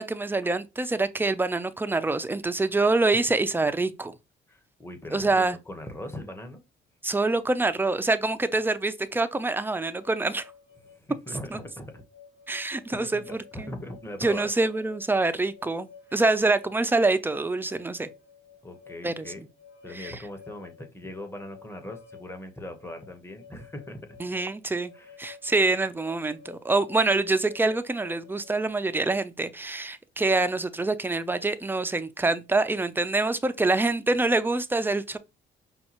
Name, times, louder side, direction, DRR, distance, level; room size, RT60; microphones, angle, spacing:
voice 1, 0.0-4.1 5.1-5.6 7.0-10.5 11.5-11.6 12.5-13.2 13.6-13.7 14.2-18.1 19.0-19.3 19.9-20.2 24.2-24.9 25.2-35.2, right 3 dB, 10° right, 0.4 m, -25 dB
voice 2, 4.5-6.6 10.9-12.0 12.9-14.5 16.1-16.2 18.6-19.5 19.8-24.2 24.9-25.4, left 1 dB, 10° left, 0.9 m, -40 dB
sound 1, 9.9-28.7, left 6 dB, 60° left, 1.4 m, -52 dB
5.4 x 2.3 x 2.9 m
cardioid pair, 90°, 20 cm